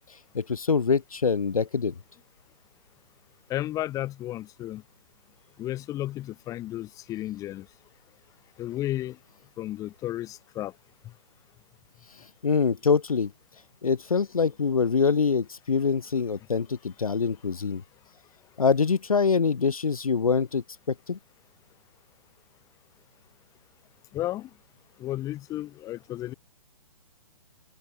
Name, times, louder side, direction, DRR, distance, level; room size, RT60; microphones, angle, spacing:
voice 1, 0.3-1.9 12.4-13.3 13.8-17.8 18.6-21.2, left 5 dB, 75° left, 0.6 m, -24 dB
voice 2, 3.5-4.8 5.6-7.6 8.6-9.2 9.6-10.7 24.1-24.5 25.0-26.3, left 14 dB, 20° left, 1.5 m, -33 dB
open air
figure-of-eight pair, 120°, 18 cm